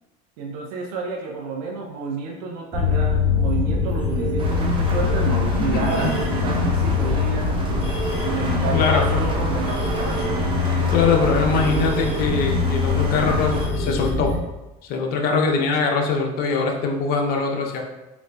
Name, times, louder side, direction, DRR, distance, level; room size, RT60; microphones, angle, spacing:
voice 1, 0.4-7.5 8.3-10.3, right 4 dB, 80° right, 0 dB, 0.6 m, -30 dB
sound 1, 2.7-14.4, left 4 dB, 10° right, 1.5 m, -23 dB
sound 2, 4.4-13.7, right 1 dB, 25° right, 0.6 m, -32 dB
voice 2, 5.6-6.1 6.8-6.9 7.4-7.8 8.7-9.1 10.9-14.3 14.8-17.8, left 4 dB, 50° left, 2 dB, 0.6 m, -22 dB
4.0 x 2.4 x 2.2 m, 1.0 s
supercardioid pair, 110°, 20 cm